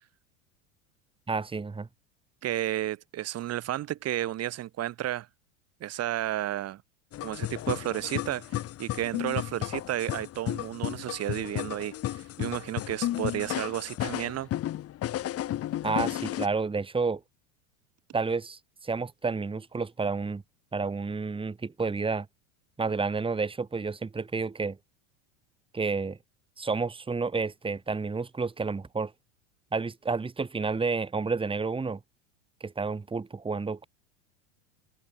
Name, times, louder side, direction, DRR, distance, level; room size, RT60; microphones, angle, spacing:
voice 1, 1.3-1.9 15.8-17.2 18.1-20.4 20.7-22.3 22.8-24.8 25.7-26.2 26.6-29.1 29.7-32.0 32.6-33.9, right 4 dB, 15° right, 3.8 m, -30 dB
voice 2, 2.4-5.3 5.8-6.8 7.2-14.5, right 13 dB, 40° right, 3.8 m, -32 dB
sound 1, 7.1-16.5, left 13 dB, 40° left, 2.1 m, -33 dB
open air
supercardioid pair, 110°, 38 cm